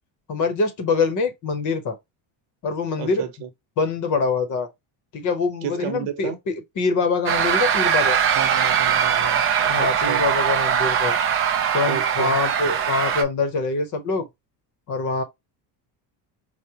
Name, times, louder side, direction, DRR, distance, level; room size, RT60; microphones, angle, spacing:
voice 1, 0.3-2.0 2.6-3.3 3.8-4.7 5.1-8.2 9.6-11.2 11.7-14.3 14.9-15.2, left 4 dB, 40° left, 0.8 m, -24 dB
voice 2, 3.0-3.5 5.6-6.4 8.4-9.4 9.8-10.2 11.9-12.4, right 9 dB, 65° right, 1.0 m, -31 dB
sound 1, 7.3-13.2, right 8 dB, 30° right, 0.4 m, -21 dB
4.7 x 2.1 x 2.8 m
cardioid pair, 170°, 46 cm